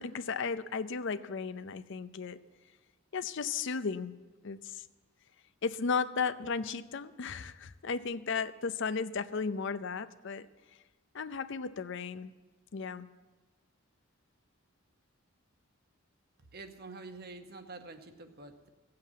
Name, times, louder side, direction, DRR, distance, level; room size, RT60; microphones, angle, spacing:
voice 1, 0.0-2.4 3.1-4.1 4.4-4.8 5.6-10.5 11.1-12.3 12.7-13.1, left 5 dB, 60° left, 13 dB, 0.5 m, -35 dB
voice 2, 16.5-18.7, right 3 dB, 50° right, 7 dB, 1.0 m, -47 dB
15.5 x 7.7 x 8.4 m, 1.2 s
head